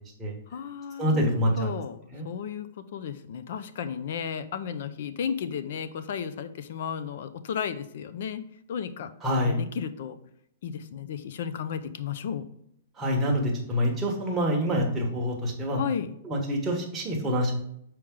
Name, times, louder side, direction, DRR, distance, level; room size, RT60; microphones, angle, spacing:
voice 1, 0.5-8.4 8.7-10.2 10.6-12.5 15.8-16.1, left 7 dB, 55° left, 12 dB, 0.5 m, -34 dB
voice 2, 1.0-1.7 2.1-2.3 9.2-9.6 13.0-15.8 16.2-17.5, equal, 10° right, -2 dB, 1.2 m, -26 dB
6.3 x 4.5 x 3.7 m, 0.73 s
hypercardioid pair, 170°, 0 cm